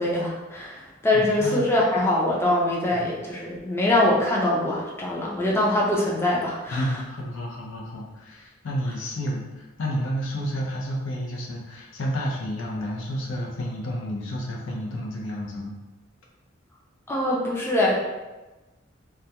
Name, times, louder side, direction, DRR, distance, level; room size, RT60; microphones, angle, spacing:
voice 1, 0.0-6.8 17.1-17.9, left 1 dB, 15° left, -4 dB, 0.4 m, -23 dB
voice 2, 1.1-1.7 2.9-3.1 6.7-15.7, equal, 85° left, -2 dB, 0.6 m, -31 dB
2.3 x 2.2 x 2.8 m, 1.1 s
head